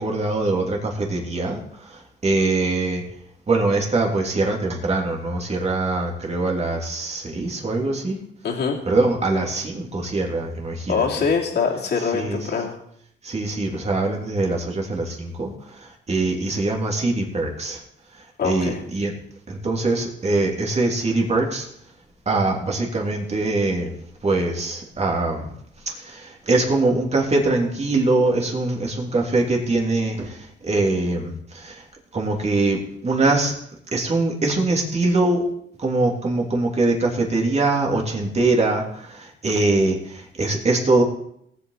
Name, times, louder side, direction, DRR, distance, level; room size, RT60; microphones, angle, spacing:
voice 1, 0.0-3.0 3.5-8.2 8.8-11.1 12.1-12.4 13.2-17.8 18.4-19.1 19.5-21.7 22.2-23.9 24.2-25.5 25.9-31.8 32.1-33.5 33.9-35.5 35.8-41.0, right 2 dB, 35° right, 0 dB, 3.1 m, -23 dB
voice 2, 8.4-8.8 10.9-12.8 18.4-18.8, left 5 dB, 55° left, -1 dB, 2.8 m, -23 dB
18.0 x 8.1 x 4.1 m, 0.69 s
cardioid pair, 90°, 20 cm